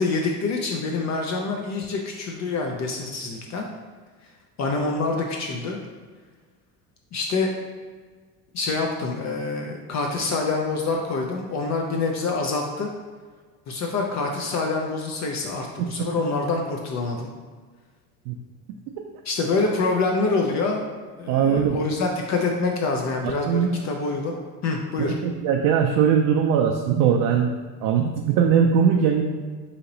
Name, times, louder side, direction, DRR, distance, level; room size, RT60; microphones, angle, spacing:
voice 1, 0.0-3.6 4.6-5.8 7.1-7.5 8.5-12.9 13.7-17.3 19.2-20.8 21.2-24.4 24.6-25.1, left 3 dB, 40° left, 1 dB, 0.5 m, -26 dB
voice 2, 21.3-21.8 23.5-23.8 25.0-27.5 27.8-29.2, right 7 dB, 70° right, 2 dB, 0.5 m, -20 dB
2.9 x 2.8 x 3.9 m, 1.5 s
supercardioid pair, 95°, 45 cm